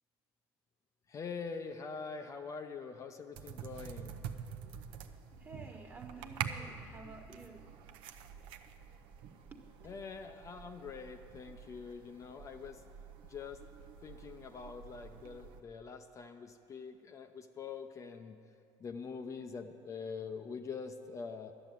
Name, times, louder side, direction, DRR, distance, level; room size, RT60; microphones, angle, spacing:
voice 1, 1.1-4.1 9.8-12.8 13.2-13.6 14.0-18.4 18.8-21.5, left 5 dB, 35° left, 6 dB, 0.6 m, -44 dB
sound 1, 3.3-15.6, right 8 dB, 75° right, 0.7 m, -47 dB
voice 2, 5.4-7.7 9.5-9.6, right 3 dB, 20° right, 3 dB, 1.4 m, -51 dB
12.0 x 7.1 x 9.1 m, 2.5 s
cardioid pair, 110°, 9 cm